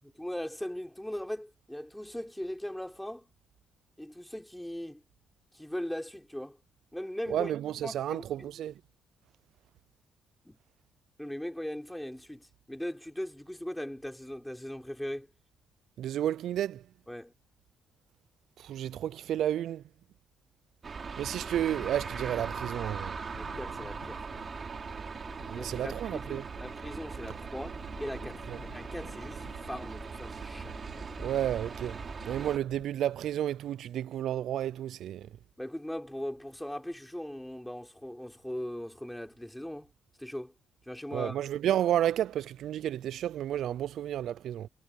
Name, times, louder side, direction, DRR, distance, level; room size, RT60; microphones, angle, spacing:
voice 1, 0.0-3.3 4.0-5.0 5.5-6.6 6.9-7.5 7.8-8.5 10.4-10.6 11.2-15.3 17.1-17.3 23.3-24.2 25.5-30.8 35.6-39.9 40.2-40.5 40.9-41.4, left 1 dB, 5° left, 4.2 m, -39 dB
voice 2, 7.3-8.7 16.0-16.8 18.6-19.8 21.2-23.1 25.5-26.4 28.5-28.6 31.2-32.0 32.3-35.3 41.1-44.7, right 11 dB, 75° right, 0.3 m, -31 dB
sound 1, 20.8-32.6, right 5 dB, 40° right, 4.1 m, -40 dB
sound 2, 21.6-32.8, left 12 dB, 80° left, 1.7 m, -53 dB
cardioid pair, 90°, 0 cm